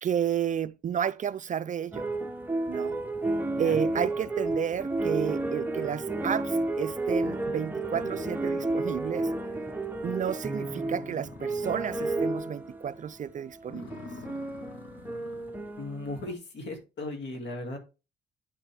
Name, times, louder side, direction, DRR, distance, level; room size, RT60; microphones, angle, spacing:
voice 1, 0.0-2.1 2.7-3.0 3.6-9.3 10.0-13.9, right 8 dB, 40° right, 0.4 m, -31 dB
sound 1, 1.9-13.0 13.5-16.3, right 2 dB, 10° right, 0.8 m, -31 dB
sound 2, 8.0-9.3 9.7-9.8 10.2-10.3 10.5-12.4 12.8-13.1 13.6-15.6, left 4 dB, 85° left, 1.7 m, -47 dB
voice 2, 15.8-17.8, left 2 dB, 65° left, 2.3 m, -37 dB
9.7 x 5.9 x 3.4 m
cardioid pair, 90°, 20 cm